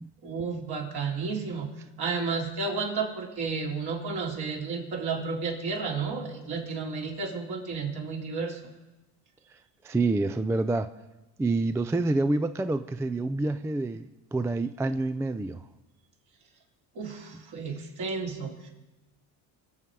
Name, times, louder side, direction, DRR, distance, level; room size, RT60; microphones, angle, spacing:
voice 1, 0.2-8.6 17.0-18.7, right 4 dB, 55° right, -1 dB, 3.5 m, -32 dB
voice 2, 9.8-10.9 11.4-15.6, right 2 dB, 5° right, 11 dB, 0.3 m, -27 dB
22.5 x 7.8 x 4.8 m, 1.1 s
supercardioid pair, 80°, 46 cm